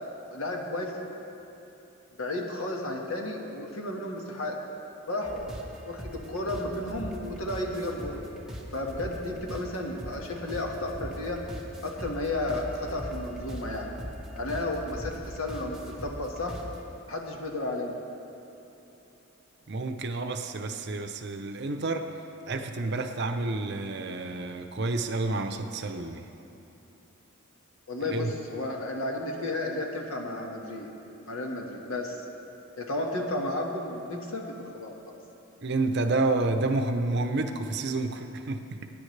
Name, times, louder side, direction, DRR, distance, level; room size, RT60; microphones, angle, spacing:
voice 1, 0.3-0.9 2.2-4.6 5.1-5.5 5.8-8.2 8.7-11.4 11.8-13.9 14.3-16.6 17.1-18.0 27.9-30.9 31.3-32.2 32.8-35.1, left 1 dB, 85° left, 0 dB, 1.7 m, -33 dB
sound 1, 5.2-16.8, equal, 5° right, 1.3 m, -41 dB
voice 2, 19.7-22.1 22.5-26.2 28.0-28.3 35.6-38.9, right 2 dB, 55° right, 6 dB, 0.7 m, -29 dB
22.5 x 10.0 x 3.3 m, 3.0 s
head